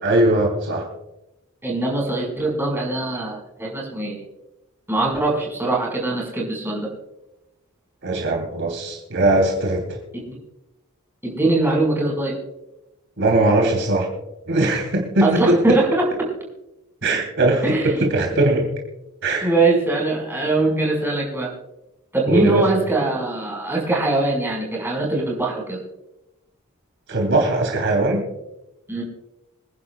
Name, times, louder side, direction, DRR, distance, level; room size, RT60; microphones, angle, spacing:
voice 1, 0.0-0.9 8.0-10.0 13.2-14.1 14.5-15.8 17.0-18.7 19.2-19.5 22.3-22.6 27.1-28.2, right 2 dB, 60° right, 0 dB, 3.1 m, -20 dB
voice 2, 1.6-4.2 4.9-6.9 10.1-10.4 11.2-12.3 15.2-16.3 17.6-18.0 19.4-21.5 22.1-25.8 28.9-29.0, right 2 dB, 10° right, -2 dB, 5.1 m, -22 dB
27.0 x 11.0 x 2.4 m, 0.93 s
head